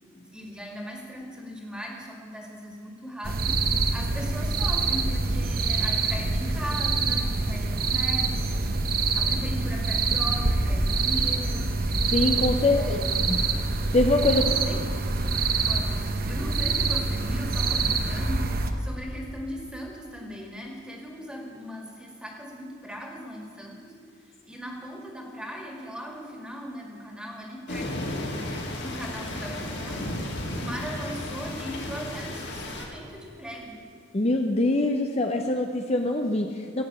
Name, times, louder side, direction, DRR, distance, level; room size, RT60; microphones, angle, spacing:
voice 1, 0.1-8.7 9.1-11.8 12.6-13.2 14.3-14.8 15.6-15.9 16.2-28.4 28.8-30.3 30.5-33.8, equal, 5° right, 1 dB, 2.0 m, -39 dB
sound 1, 3.2-18.7, right 3 dB, 45° right, 1.0 m, -25 dB
voice 2, 12.0-13.0 13.3-13.4 13.9-14.5 34.1-36.8, left 2 dB, 30° left, 3 dB, 0.6 m, -24 dB
sound 2, 27.7-32.9, left 1 dB, 55° left, 2.5 m, -33 dB
15.5 x 8.5 x 8.8 m, 2.3 s
head